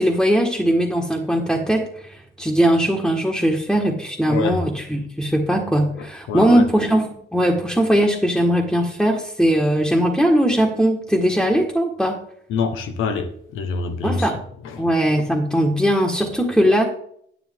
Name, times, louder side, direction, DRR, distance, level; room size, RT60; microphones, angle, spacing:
voice 1, 0.0-12.2 14.0-14.4 14.8-16.8, equal, ahead, 1.6 m, -19 dB
voice 2, 4.3-4.6 6.0-6.6 12.5-14.3 14.6-14.9, left 5 dB, 90° left, 1.4 m, -26 dB
10.0 x 8.6 x 3.7 m
cardioid pair, 90°, 20 cm